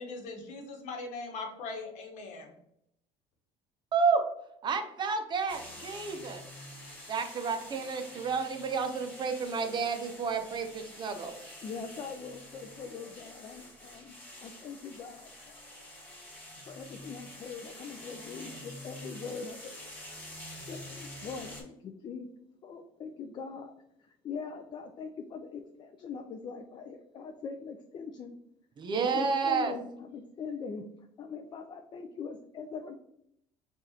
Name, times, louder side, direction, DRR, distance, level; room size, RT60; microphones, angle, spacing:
voice 1, 0.0-2.5, left 3 dB, 70° left, 2 dB, 1.0 m, -40 dB
voice 2, 3.9-4.2 4.6-6.4 7.1-11.4 28.8-29.7, right 5 dB, 35° right, 7 dB, 0.5 m, -30 dB
sound 1, 5.5-21.6, left 1 dB, 15° left, 1.5 m, -47 dB
voice 3, 11.6-14.2 14.4-15.6 16.6-19.7 20.7-22.3 22.6-23.7 24.0-28.4 29.0-33.0, left 5 dB, 40° left, 6 dB, 0.4 m, -42 dB
4.7 x 2.4 x 2.8 m, 0.75 s
cardioid pair, 110°, 13 cm